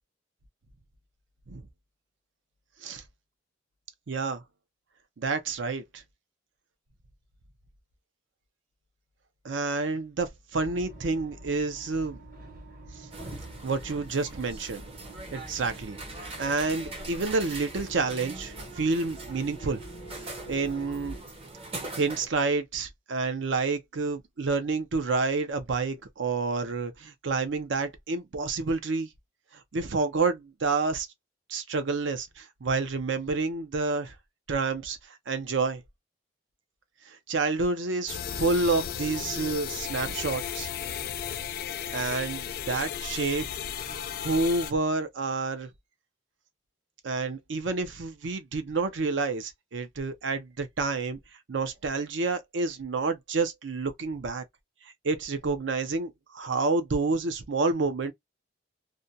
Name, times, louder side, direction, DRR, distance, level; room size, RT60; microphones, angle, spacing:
voice 1, 4.1-4.4 5.2-6.0 9.4-12.2 13.6-14.8 15.3-19.8 20.2-21.2 22.0-29.1 29.7-31.1 31.5-34.1 34.5-35.8 37.1-40.7 41.9-43.5 43.7-45.7 47.0-51.2 51.5-54.4 55.0-58.1, right 3 dB, 80° right, 0.6 m, -29 dB
sound 1, 10.5-21.2, right 1 dB, 50° right, 1.0 m, -45 dB
sound 2, 13.1-22.3, right 2 dB, 30° right, 0.6 m, -42 dB
sound 3, 38.1-44.7, left 9 dB, 50° left, 0.3 m, -35 dB
2.4 x 2.2 x 2.6 m
head